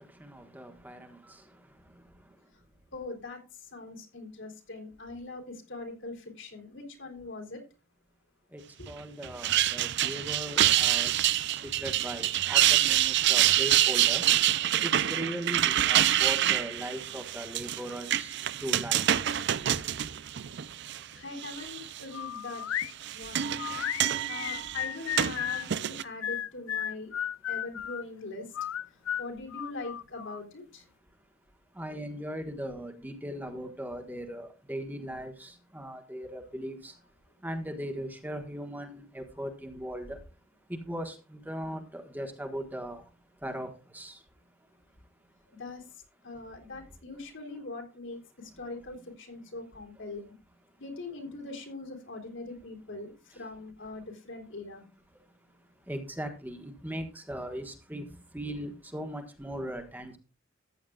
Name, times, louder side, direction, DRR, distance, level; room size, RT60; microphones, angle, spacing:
voice 1, 0.0-2.5 8.5-19.2 20.5-20.9 21.1-21.2 31.7-37.0 37.4-40.2 40.7-44.3 46.7-46.8 53.3-53.4 55.3-60.2, equal, 10° right, 1.4 m, -39 dB
voice 2, 2.9-7.6 8.8-8.9 21.1-22.6 23.1-23.6 24.3-27.1 27.5-28.6 28.9-30.8 45.5-50.3 50.8-54.9, left 2 dB, 65° left, 3.7 m, -42 dB
sound 1, 9.2-21.0 21.4-22.0 22.8-26.0, right 12 dB, 60° right, 0.5 m, -26 dB
sound 2, 22.1-22.9 23.6-25.7 26.2-28.0 28.5-30.4, left 10 dB, 85° left, 0.4 m, -34 dB
14.0 x 9.3 x 2.4 m
head